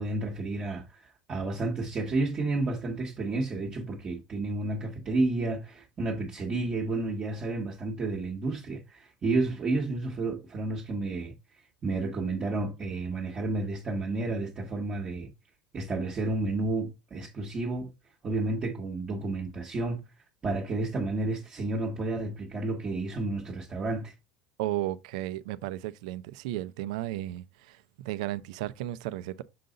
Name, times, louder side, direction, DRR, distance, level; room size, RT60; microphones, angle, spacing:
voice 1, 0.0-11.3 11.8-15.3 15.7-17.9 18.2-20.0 20.4-24.1, right 2 dB, 25° right, 1.1 m, -31 dB
voice 2, 24.6-29.4, right 15 dB, 80° right, 0.5 m, -34 dB
6.7 x 3.9 x 3.8 m
cardioid pair, 150°, 4 cm